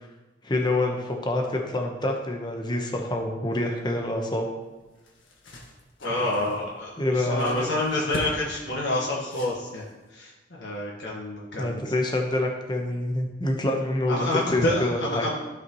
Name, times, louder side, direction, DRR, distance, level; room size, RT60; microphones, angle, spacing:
voice 1, 0.4-4.5 7.0-7.7 11.6-15.3, left 1 dB, 20° left, 1 dB, 1.0 m, -27 dB
sound 1, 4.6-10.1, left 1 dB, 75° left, 1.5 m, -42 dB
voice 2, 6.0-9.8 10.1-10.3 10.6-11.8 14.1-15.3, left 1 dB, 60° left, -4 dB, 1.5 m, -28 dB
14.0 x 5.9 x 3.1 m, 1.2 s
head